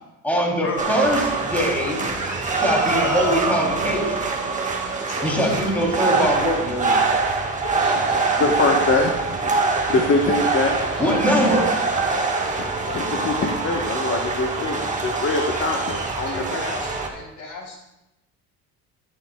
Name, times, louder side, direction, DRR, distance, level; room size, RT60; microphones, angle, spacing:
voice 1, 0.2-2.1 2.5-4.2 5.2-7.0 11.0-11.7, equal, 5° left, -2 dB, 3.0 m, -22 dB
sound 1, 0.8-17.1, right 3 dB, 20° right, 1.5 m, -24 dB
voice 2, 5.1-6.7 7.6-8.5 10.6-13.0 16.2-17.8, left 3 dB, 60° left, -2 dB, 3.5 m, -36 dB
voice 3, 8.4-9.1 9.4-9.5 9.9-10.7 12.9-16.6, left 3 dB, 40° left, 1 dB, 1.2 m, -23 dB
14.5 x 8.8 x 2.3 m, 0.94 s
cardioid pair, 100°, 34 cm